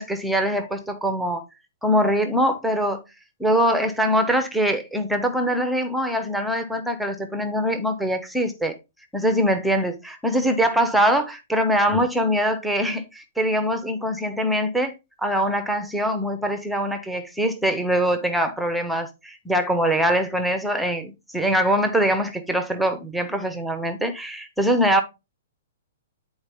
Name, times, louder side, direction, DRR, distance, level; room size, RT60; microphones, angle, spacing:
voice 1, 0.0-1.4 1.8-3.0 3.4-8.8 9.1-25.0, equal, ahead, 0.6 m, -23 dB
9.6 x 4.0 x 3.5 m
hypercardioid pair, 165°, 0 cm